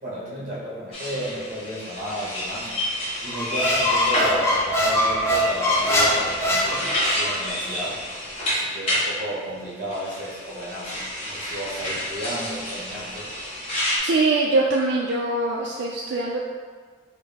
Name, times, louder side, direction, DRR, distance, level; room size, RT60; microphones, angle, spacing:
voice 1, 0.0-2.7 3.2-8.0 8.5-13.3, equal, 45° right, -6 dB, 1.1 m, -33 dB
sound 1, 0.9-9.1 9.9-14.0, left 1 dB, 30° left, 1.0 m, -29 dB
Squeak, 3.3-7.4, left 1 dB, 15° left, 0.4 m, -22 dB
voice 2, 14.0-16.5, right 2 dB, 75° right, -2 dB, 0.3 m, -23 dB
4.7 x 2.0 x 3.4 m, 1.6 s
head